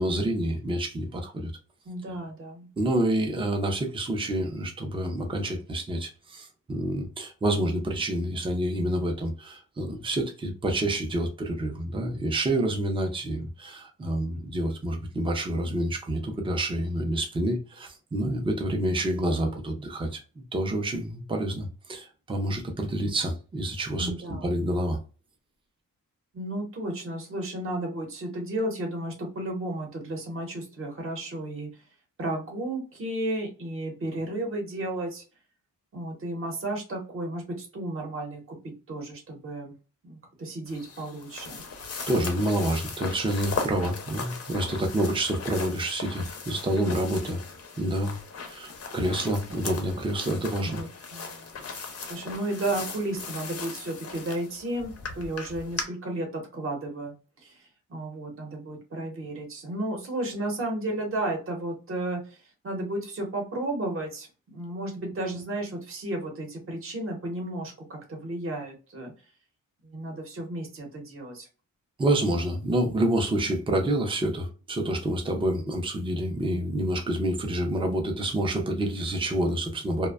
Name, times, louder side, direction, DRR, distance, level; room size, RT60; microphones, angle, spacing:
voice 1, 0.0-1.5 2.8-25.0 42.1-47.4 47.8-50.8 72.0-80.1, right 1 dB, 15° right, 0.4 m, -28 dB
voice 2, 1.9-2.7 24.0-24.5 26.3-31.7 32.2-35.2 35.9-38.6 38.9-39.7 40.0-41.6 50.7-51.6 52.1-57.1 57.4-57.6 57.9-69.1 69.8-71.5, right 1 dB, 40° right, 0.8 m, -33 dB
sound 1, 40.7-55.8, left 4 dB, 45° left, 0.5 m, -38 dB
2.5 x 2.1 x 2.3 m
wide cardioid pair, 160°, 34 cm